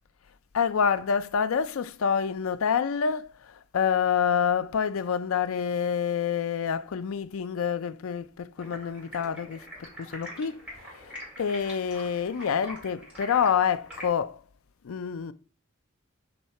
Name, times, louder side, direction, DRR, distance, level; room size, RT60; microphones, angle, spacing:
voice 1, 0.5-14.4 14.8-15.3, left 7 dB, 85° left, 0.4 m, -27 dB
Stream, 8.6-14.1, equal, 5° right, 2.8 m, -44 dB
7.2 x 3.7 x 4.2 m
head